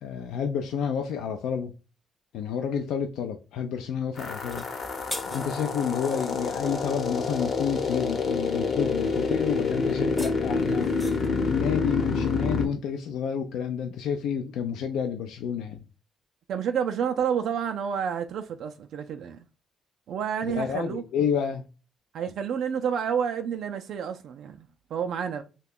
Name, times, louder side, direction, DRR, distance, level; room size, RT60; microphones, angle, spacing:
voice 1, 0.0-1.7 2.3-4.7 5.3-11.1 11.4-15.8 20.4-21.7, left 7 dB, 85° left, 0.4 m, -29 dB
sound 1, 4.2-12.7, left 4 dB, 50° left, 0.8 m, -28 dB
sound 2, 4.4-5.9 9.9-11.4, equal, 5° left, 0.6 m, -40 dB
voice 2, 16.5-19.4 20.1-21.0 22.1-25.4, right 7 dB, 75° right, 0.3 m, -29 dB
2.9 x 2.2 x 3.6 m
cardioid pair, 90°, 0 cm